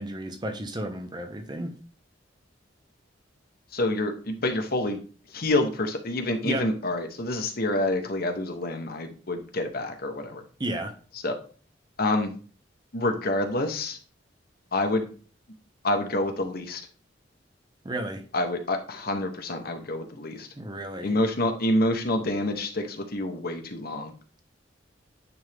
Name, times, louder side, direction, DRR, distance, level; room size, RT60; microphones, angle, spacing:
voice 1, 0.0-1.7 6.4-6.7 10.6-10.9 17.8-18.2 20.6-21.1, right 1 dB, 25° right, 0.8 m, -32 dB
voice 2, 3.7-5.0 5.3-10.4 11.2-11.4 12.0-12.4 12.9-14.0 14.7-15.1 15.8-16.8 18.3-20.5 21.0-24.1, left 1 dB, 55° left, 1.1 m, -27 dB
9.5 x 3.6 x 3.5 m
head